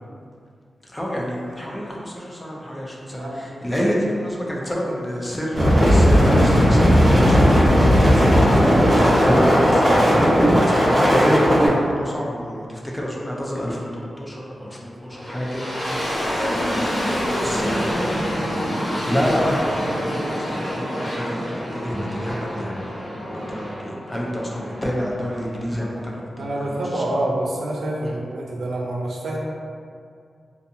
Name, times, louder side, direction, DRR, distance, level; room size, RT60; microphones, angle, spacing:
voice 1, 0.8-21.4 21.7-27.0 28.0-28.2, equal, 10° left, -4 dB, 0.4 m, -28 dB
sound 1, 5.5-11.7, equal, 15° right, 1.1 m, -15 dB
sound 2, 15.1-26.0, equal, 45° left, 1.0 m, -27 dB
voice 2, 26.4-29.4, right 1 dB, 90° right, -3 dB, 0.4 m, -27 dB
2.6 x 2.3 x 2.6 m, 2.3 s
wide cardioid pair, 165°, 0 cm